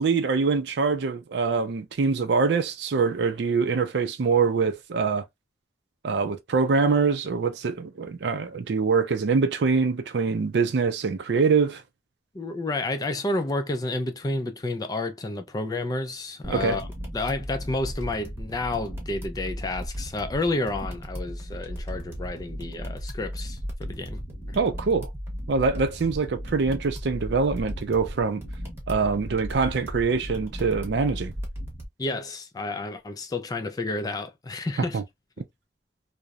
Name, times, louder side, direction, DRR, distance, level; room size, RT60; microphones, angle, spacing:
voice 1, 0.0-5.2 6.0-11.8 16.5-16.8 24.6-25.1 25.5-28.4 28.9-31.3 34.9-35.0, right 4 dB, 75° right, 0.4 m, -24 dB
voice 2, 12.3-16.9 17.1-24.2 24.5-24.6 32.0-35.0, left 2 dB, 20° left, 0.3 m, -30 dB
sound 1, 16.4-31.9, equal, 15° right, 0.8 m, -36 dB
2.8 x 2.0 x 2.3 m
head